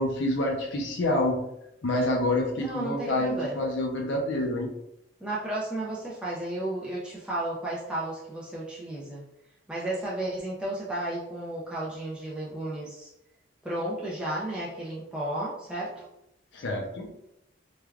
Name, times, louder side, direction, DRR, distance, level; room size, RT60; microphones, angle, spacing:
voice 1, 0.0-1.4 1.8-4.7 16.5-17.1, left 1 dB, 75° left, 0 dB, 0.5 m, -27 dB
voice 2, 2.6-3.6 5.2-9.2 9.7-13.1 13.6-16.1, right 1 dB, 5° right, -7 dB, 0.4 m, -33 dB
3.2 x 2.2 x 2.3 m, 0.83 s
head